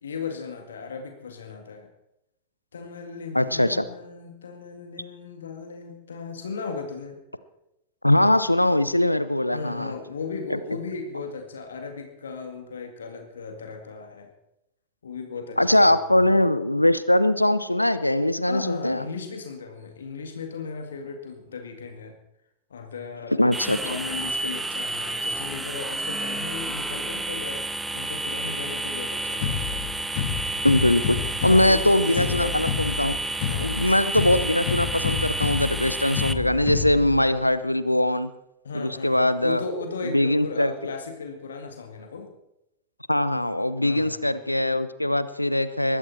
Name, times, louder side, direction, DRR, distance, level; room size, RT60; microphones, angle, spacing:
voice 1, 0.0-1.9 2.7-7.2 9.5-14.3 15.0-16.1 18.5-22.1 22.7-27.6 27.9-30.1 31.5-32.6 33.5-33.8 38.6-42.3 43.8-44.2, left 5 dB, 70° left, 5 dB, 2.1 m, -36 dB
voice 2, 3.3-3.9 8.0-9.9 10.5-10.6 15.6-19.0 23.4-23.8 24.4-24.5 30.6-33.2 33.6-38.3 38.7-39.6 40.0-40.9 43.1-46.0, left 1 dB, 85° left, 15 dB, 0.8 m, -21 dB
sound 1, 23.5-36.3, right 2 dB, 10° right, 0.8 m, -30 dB
sound 2, 29.4-37.4, left 9 dB, 50° left, 2.0 m, -30 dB
20.5 x 13.5 x 4.4 m, 0.87 s
figure-of-eight pair, 90°, 0 cm